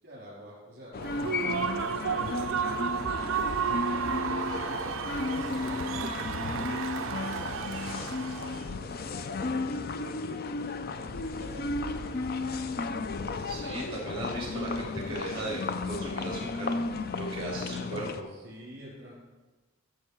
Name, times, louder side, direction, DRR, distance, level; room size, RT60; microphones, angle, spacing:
voice 1, 0.0-2.8 3.5-6.0 6.4-10.4 10.8-12.6 18.3-19.1, equal, 50° right, -4 dB, 3.2 m, -49 dB
sound 1, 0.9-18.2, left 3 dB, 45° left, 0.4 m, -34 dB
Human voice / Cheering / Applause, 1.0-8.7, right 7 dB, 65° right, 0.4 m, -33 dB
voice 2, 13.4-16.8 17.1-18.3, right 1 dB, 25° right, -5 dB, 3.0 m, -37 dB
13.0 x 6.5 x 4.6 m, 1.2 s
head